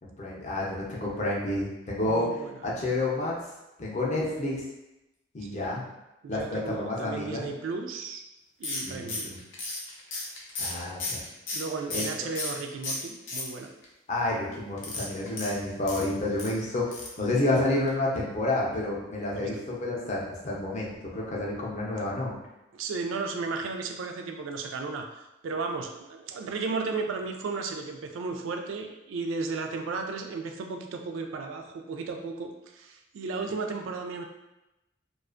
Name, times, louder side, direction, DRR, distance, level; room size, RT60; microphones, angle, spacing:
voice 1, 0.0-2.2 2.6-3.4 3.8-4.6 5.3-5.8 6.3-7.4 8.8-9.4 10.6-11.2 11.9-12.1 14.1-16.9 17.2-22.3, left 2 dB, 35° left, -4 dB, 0.5 m, -29 dB
voice 2, 2.1-2.6 5.4-5.7 6.2-8.2 8.6-9.3 11.5-13.7 19.3-19.6 22.7-34.2, right 4 dB, 85° right, 4 dB, 0.3 m, -34 dB
sound 1, 8.6-12.6 12.8-13.8 14.8-16.5 16.9-17.2 17.5-17.6 17.9-18.0, left 2 dB, 80° left, 0.6 m, -34 dB
2.4 x 2.3 x 2.4 m, 0.95 s
head